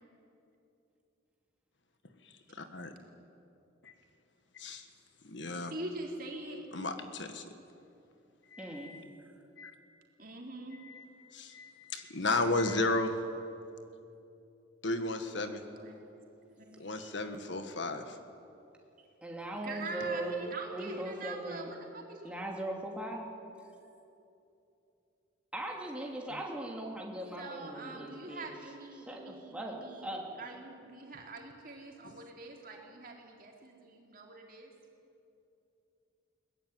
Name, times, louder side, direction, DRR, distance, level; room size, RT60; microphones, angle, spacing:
voice 1, 2.5-2.9 3.8-3.9 4.5-4.9 5.2-5.8 6.7-7.4 8.5-9.0 9.6-9.7 10.8-11.1 11.3-13.1 14.8-15.6 16.8-18.2 32.0-32.2, left 2 dB, 65° left, 7 dB, 1.7 m, -34 dB
voice 2, 5.7-6.7 10.2-10.8 15.7-16.0 16.6-17.1 19.6-22.3 27.4-30.1 30.4-34.7, right 2 dB, 45° right, 0 dB, 3.7 m, -44 dB
voice 3, 8.6-9.0 19.2-21.7 22.2-23.3 25.5-28.5 29.0-29.7 30.0-30.3, right 1 dB, 5° right, -1 dB, 2.9 m, -39 dB
22.5 x 19.0 x 9.5 m, 2.8 s
head